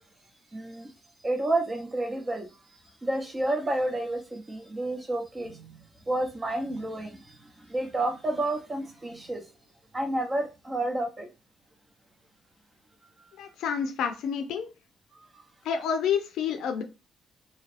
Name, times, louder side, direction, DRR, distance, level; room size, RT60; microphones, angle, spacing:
voice 1, 0.5-0.9 1.2-2.5 3.0-9.5 9.9-11.3, right 1 dB, 25° right, 0.8 m, -30 dB
voice 2, 13.4-14.7 15.6-16.8, left 7 dB, 80° left, 0.4 m, -29 dB
2.8 x 2.4 x 3.2 m
cardioid pair, 90°, 0 cm